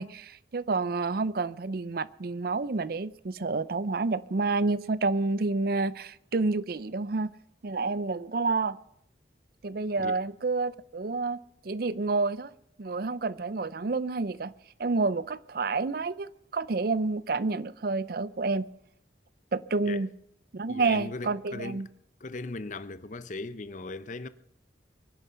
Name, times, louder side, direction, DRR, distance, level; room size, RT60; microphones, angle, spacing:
voice 1, 0.0-7.3 7.6-8.8 9.6-11.4 11.6-12.5 12.8-14.5 14.8-18.6 19.5-20.1 20.5-21.9, right 3 dB, 55° right, 0.5 m, -29 dB
voice 2, 20.7-21.8 22.2-24.3, left 3 dB, 45° left, 0.7 m, -38 dB
24.0 x 10.0 x 5.7 m
head